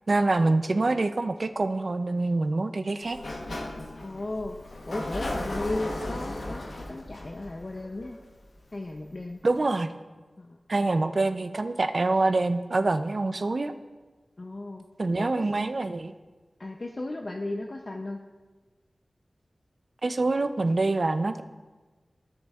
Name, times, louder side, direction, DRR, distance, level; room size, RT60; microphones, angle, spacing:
voice 1, 0.1-3.2 9.4-9.9 10.7-13.7 15.0-16.1 20.0-21.4, right 2 dB, 50° right, 10 dB, 0.5 m, -25 dB
Sliding door, 3.0-8.7, left 1 dB, 75° left, 1.0 m, -36 dB
voice 2, 4.0-4.6 4.9-8.2 8.7-9.4 10.4-10.6 14.4-14.8 15.2-15.5 16.6-18.2, left 2 dB, 45° left, 3 dB, 0.5 m, -35 dB
16.0 x 6.8 x 2.4 m, 1.3 s
wide cardioid pair, 85°, 0 cm